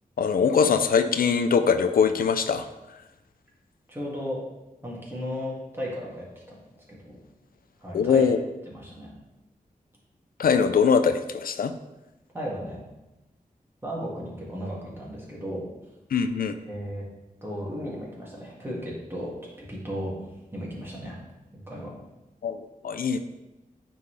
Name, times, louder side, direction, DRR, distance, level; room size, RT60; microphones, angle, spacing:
voice 1, 0.2-2.7 7.9-8.4 10.4-11.8 16.1-16.5 22.4-23.2, left 6 dB, 80° left, 8 dB, 0.4 m, -22 dB
voice 2, 3.9-4.4 4.8-6.6 6.9-7.2 7.8-8.3 8.7-9.1 12.3-12.8 13.8-15.6 16.7-17.0 17.4-19.3 19.6-21.2 21.5-21.9, equal, 15° right, -5 dB, 2.1 m, -35 dB
9.3 x 3.9 x 3.3 m, 1.0 s
wide cardioid pair, 90°, 15 cm